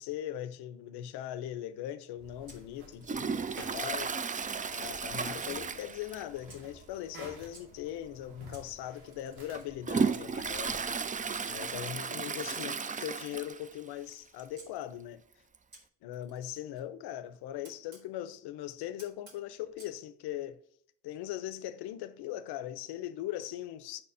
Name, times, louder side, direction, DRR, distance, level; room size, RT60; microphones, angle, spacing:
voice 1, 0.0-4.4 4.7-11.0 11.5-15.2 16.0-20.6 21.0-24.0, left 12 dB, 80° left, 0.6 m, -40 dB
sound 1, 2.1-11.9, right 1 dB, 90° right, 1.1 m, -53 dB
Camera, 2.5-3.7 4.5-5.7 6.5-7.6 8.5-11.5 12.5-14.7 15.7-18.1 19.0-20.0, right 2 dB, 65° right, 2.2 m, -58 dB
Toilet flush, 3.0-6.5 6.8-6.9 7.3-7.4 8.2-8.3 8.9-13.8 14.1-14.2 14.4-14.5 15.5-15.6, right 5 dB, 20° right, 0.4 m, -34 dB
4.7 x 4.3 x 4.8 m
hypercardioid pair, 45°, 39 cm